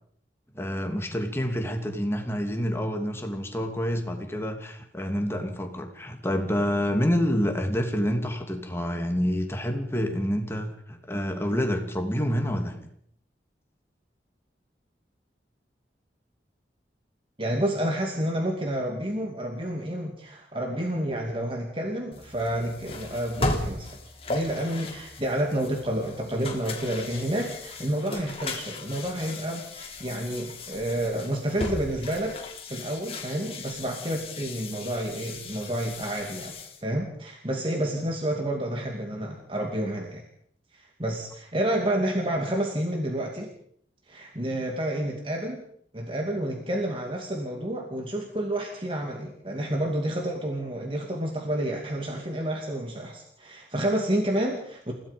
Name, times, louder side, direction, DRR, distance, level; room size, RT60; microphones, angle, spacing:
voice 1, 0.5-12.8, equal, 15° left, 4 dB, 2.7 m, -28 dB
voice 2, 17.4-36.5 36.8-40.3 40.7-43.5 44.1-45.6 45.9-54.9, right 1 dB, 30° right, 2 dB, 2.5 m, -29 dB
sound 1, 22.1-36.8, left 2 dB, 35° left, 3.5 m, -37 dB
30.0 x 17.0 x 5.3 m, 0.66 s
head